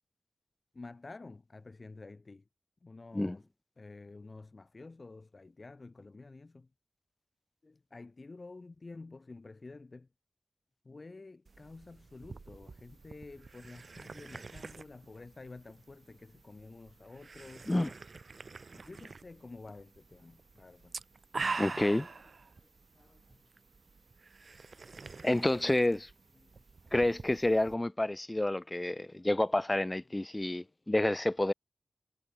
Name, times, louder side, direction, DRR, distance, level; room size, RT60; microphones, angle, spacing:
voice 1, 0.7-2.4 2.8-3.4 3.8-6.7 7.6-10.1 10.8-17.7 18.7-20.9 22.9-23.4 26.4-26.9 28.5-29.3 30.4-30.8, left 3 dB, 50° left, 6.0 m, -50 dB
sound 1, 11.5-27.8, right 4 dB, 65° right, 6.1 m, -45 dB
voice 2, 21.6-22.1 25.2-26.1 26.9-31.5, left 1 dB, 25° left, 1.7 m, -29 dB
cardioid pair, 45°, 0 cm